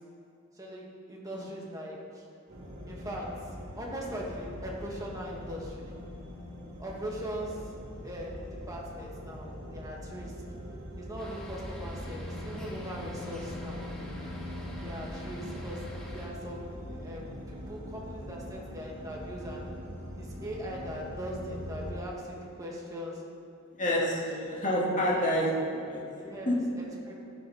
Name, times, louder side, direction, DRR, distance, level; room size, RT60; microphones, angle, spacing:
voice 1, 0.6-2.2 2.9-3.3 3.8-5.9 6.8-7.7 8.0-8.4 8.7-10.3 11.0-13.8 14.8-15.8 16.1-19.6 20.2-23.2 23.9-24.1 24.5-24.6 25.1-25.4 26.2-27.1, equal, 15° right, -3 dB, 2.2 m, -40 dB
sound 1, 2.5-21.9, equal, 60° right, 2.7 m, -42 dB
sound 2, 11.2-16.3, equal, 5° left, 2.0 m, -46 dB
voice 2, 23.7-26.0 26.5-26.6, equal, 35° left, -5 dB, 2.3 m, -28 dB
14.5 x 10.5 x 4.4 m, 2.5 s
head